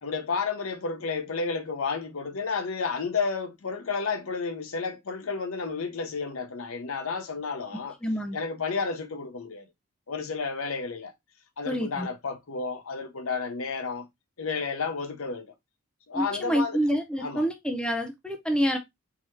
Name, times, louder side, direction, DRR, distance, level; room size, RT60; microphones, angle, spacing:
voice 1, 0.0-8.0 8.3-9.7 10.1-11.1 11.6-14.1 14.4-15.5 16.1-16.8 17.2-17.4, left 4 dB, 80° left, 0.8 m, -31 dB
voice 2, 8.0-8.4 11.7-12.1 16.1-18.8, equal, 5° left, 0.5 m, -27 dB
3.8 x 2.8 x 3.0 m
head